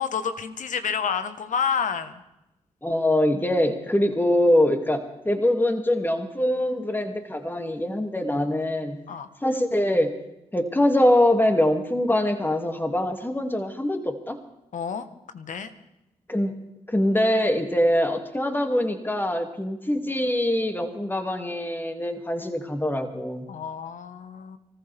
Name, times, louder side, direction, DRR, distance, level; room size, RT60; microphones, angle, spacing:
voice 1, 0.0-2.2 9.1-9.3 14.7-15.1 15.3-15.7 23.5-24.6, left 7 dB, 70° left, 10 dB, 1.3 m, -29 dB
voice 2, 2.8-9.0 9.4-10.2 10.5-14.4 16.3-16.6 16.9-23.5, left 1 dB, 15° left, 5 dB, 2.5 m, -23 dB
25.0 x 14.5 x 3.5 m, 0.90 s
supercardioid pair, 45°, 13 cm